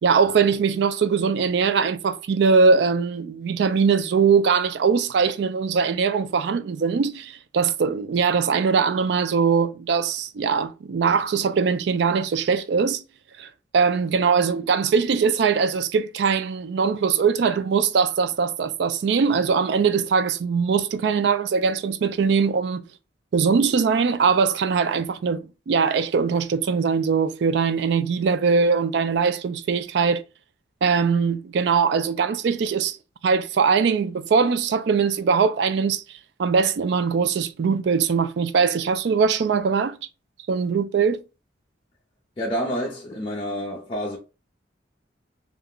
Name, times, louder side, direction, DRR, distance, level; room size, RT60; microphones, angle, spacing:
voice 1, 0.0-13.0 13.4-22.9 23.3-30.2 30.8-33.0 33.2-40.0 40.5-41.2, right 5 dB, 60° right, 0.3 m, -21 dB
voice 2, 42.4-44.2, equal, 30° left, 0.5 m, -28 dB
2.4 x 2.1 x 3.6 m
head